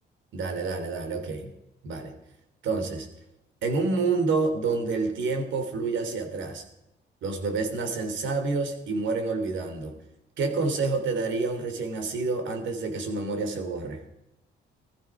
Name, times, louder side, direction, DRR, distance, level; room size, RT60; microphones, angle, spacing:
voice 1, 0.3-1.5 1.8-2.1 2.6-3.1 3.6-6.6 7.2-10.0 10.4-14.0, right 4 dB, 70° right, 6 dB, 3.3 m, -28 dB
18.0 x 15.0 x 4.9 m, 0.90 s
cardioid pair, 90°, 20 cm